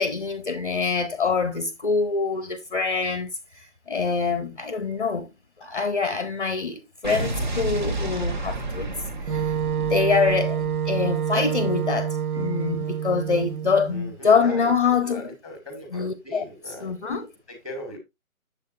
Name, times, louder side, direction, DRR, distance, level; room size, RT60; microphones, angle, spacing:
voice 1, 0.0-3.3 3.9-5.3 5.6-8.9 9.3-15.2 15.9-17.3, left 5 dB, 35° left, 0.7 m, -25 dB
Explosion, 7.0-11.4, right 2 dB, 35° right, 1.1 m, -31 dB
Wind instrument woodwind instrument, 9.3-14.0, right 8 dB, 80° right, 0.7 m, -27 dB
voice 2, 13.9-16.9 17.5-18.0, left 1 dB, ahead, 1.5 m, -39 dB
8.0 x 7.2 x 2.5 m
figure-of-eight pair, 145°, 43 cm